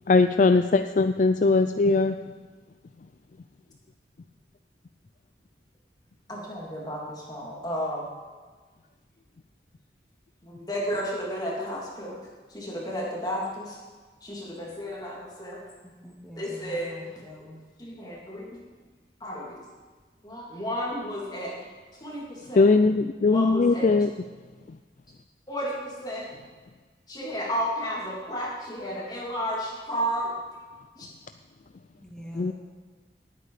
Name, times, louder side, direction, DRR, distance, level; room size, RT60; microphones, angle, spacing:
voice 1, 0.1-2.2 22.5-24.1 32.3-32.5, left 3 dB, 45° left, 9 dB, 0.4 m, -20 dB
voice 2, 6.3-8.0 10.4-12.2 12.5-13.8 14.2-15.6 16.4-17.0 17.8-18.5 19.2-19.6 20.2-21.5 22.0-22.7 23.3-24.0 25.5-26.3 27.1-30.3 31.0-31.1, equal, 25° left, -3 dB, 3.0 m, -32 dB
voice 3, 16.0-17.6 32.0-32.5, equal, 5° left, -3 dB, 1.8 m, -44 dB
18.5 x 8.5 x 5.0 m, 1.4 s
head